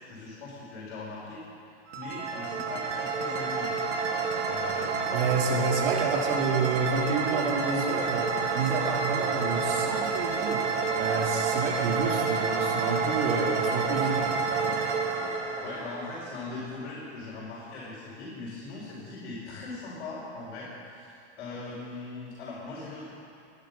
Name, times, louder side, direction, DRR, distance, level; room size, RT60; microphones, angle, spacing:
voice 1, 0.1-3.7 4.0-5.8 15.6-23.1, left 3 dB, 65° left, -7 dB, 4.9 m, -40 dB
sound 1, 1.9-16.7, right 4 dB, 85° right, 2.3 m, -29 dB
voice 2, 5.1-10.6 10.9-14.4, right 4 dB, 55° right, 0 dB, 2.8 m, -29 dB
22.5 x 10.5 x 5.4 m, 2.5 s
supercardioid pair, 145°, 35 cm